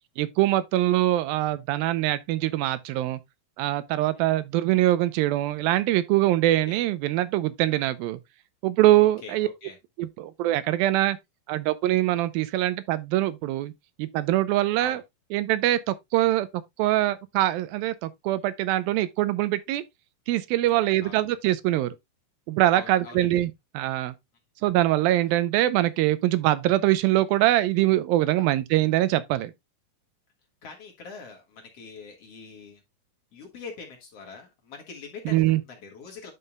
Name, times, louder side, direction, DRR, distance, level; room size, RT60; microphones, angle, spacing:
voice 1, 0.2-3.2 3.6-8.2 8.6-9.5 10.0-11.2 11.5-13.7 14.0-15.0 15.3-16.5 16.8-19.8 20.3-22.0 22.5-24.1 24.6-29.5 35.3-35.6, right 15 dB, 90° right, 2.5 m, -23 dB
voice 2, 9.0-9.8 14.8-15.0 20.7-21.2 22.7-23.2 28.4-28.5 30.6-32.8 33.3-36.3, left 5 dB, 50° left, 2.2 m, -43 dB
11.0 x 5.7 x 2.2 m
omnidirectional pair, 4.1 m